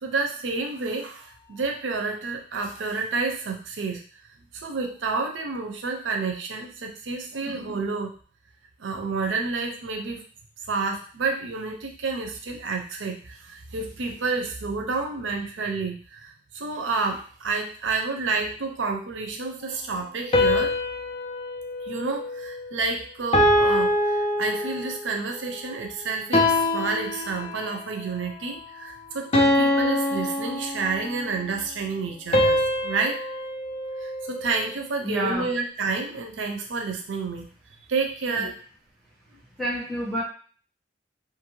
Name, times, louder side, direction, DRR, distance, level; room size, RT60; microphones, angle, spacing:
voice 1, 0.0-4.0 4.5-8.2 8.8-10.2 10.7-20.8 21.8-33.2 34.0-37.5 37.9-38.5, right 4 dB, 85° right, 3 dB, 0.5 m, -29 dB
sound 1, 20.3-22.8 23.3-25.1 26.3-27.9 29.3-31.2 32.3-34.7, left 1 dB, 30° left, 0.4 m, -24 dB
voice 2, 35.0-35.5 38.3-38.5 39.6-40.2, right 1 dB, ahead, -7 dB, 1.1 m, -28 dB
2.6 x 2.5 x 3.0 m, 0.41 s
head